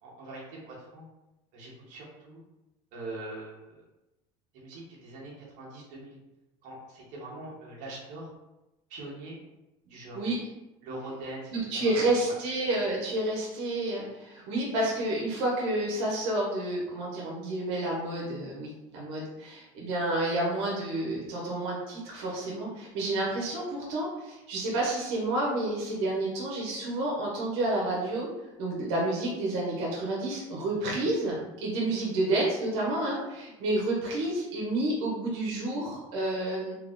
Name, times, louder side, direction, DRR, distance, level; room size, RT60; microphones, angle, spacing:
voice 1, 0.0-1.0 1.5-2.4 2.9-3.7 4.5-6.2 6.6-8.3 8.9-9.4 9.9-10.2 10.8-12.1, right 2 dB, 60° right, -4 dB, 1.2 m, -42 dB
voice 2, 11.5-28.3 28.6-36.8, right 2 dB, 85° right, -4 dB, 1.1 m, -30 dB
3.2 x 2.4 x 3.6 m, 0.97 s
supercardioid pair, 125°, 15 cm